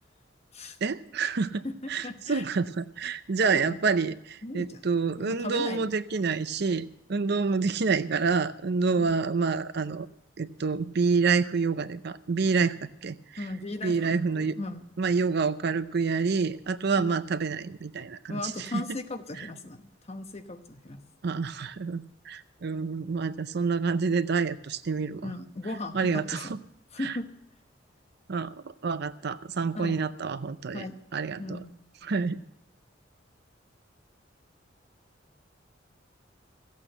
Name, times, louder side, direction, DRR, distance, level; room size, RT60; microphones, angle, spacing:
voice 1, 0.8-1.6 1.9-6.8 7.1-10.1 10.4-13.1 13.8-14.5 15.0-18.4 21.2-25.2 25.9-26.5 27.0-27.1 28.3-28.5 28.8-30.8 31.1-31.6 32.1-32.4, right 4 dB, 60° right, 13 dB, 0.6 m, -27 dB
voice 2, 1.6-2.5 3.4-3.8 4.4-4.8 5.2-6.0 9.0-9.2 13.4-14.9 16.9-17.2 18.3-21.0 25.2-26.6 26.9-27.3 29.7-30.0 30.7-31.0 31.4-31.7, left 2 dB, 35° left, 7 dB, 1.0 m, -37 dB
14.5 x 8.5 x 7.8 m, 0.77 s
head